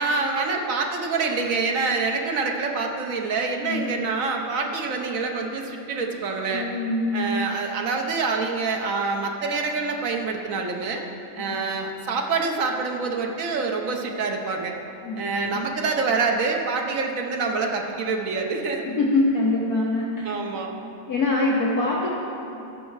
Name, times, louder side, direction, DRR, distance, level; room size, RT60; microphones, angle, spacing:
voice 1, 0.0-6.7 7.1-11.0 11.4-14.8 15.2-18.9 20.2-20.7, right 4 dB, 50° right, 2 dB, 1.0 m, -26 dB
voice 2, 3.6-3.9 6.5-7.3 11.4-11.6 15.0-15.6 18.8-20.3 21.1-22.1, left 2 dB, 55° left, -4 dB, 1.4 m, -24 dB
16.0 x 6.1 x 4.7 m, 2.8 s
omnidirectional pair, 2.3 m